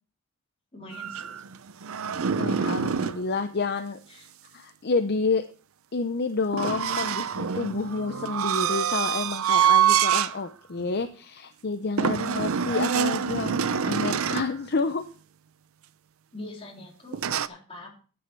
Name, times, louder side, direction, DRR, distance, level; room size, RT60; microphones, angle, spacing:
voice 1, 0.7-1.3 2.1-2.4 4.1-4.3 16.3-18.1, left 1 dB, 25° left, -1 dB, 3.5 m, -43 dB
sound 1, 0.9-3.2 6.5-10.4 10.8-11.0 12.0-14.6 17.1-17.5, right 8 dB, 70° right, 0.6 m, -25 dB
voice 2, 2.0-4.0 4.5-5.4 5.9-15.0, left 4 dB, 50° left, 8 dB, 0.7 m, -29 dB
10.5 x 9.6 x 4.6 m, 0.39 s
head